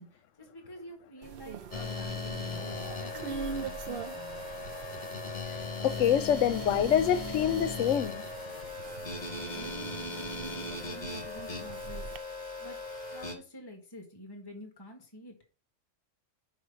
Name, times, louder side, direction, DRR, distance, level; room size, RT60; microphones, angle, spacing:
voice 1, 0.0-4.5 9.3-12.1 12.6-12.8 13.1-15.4, equal, 20° left, 1.7 m, -48 dB
sound 1, 1.2-12.2, right 6 dB, 55° right, 0.7 m, -44 dB
sound 2, 1.7-13.3, left 3 dB, 35° left, 1.7 m, -38 dB
voice 2, 5.8-8.2, left 9 dB, 80° left, 1.0 m, -26 dB
6.4 x 5.0 x 6.8 m
omnidirectional pair, 1.3 m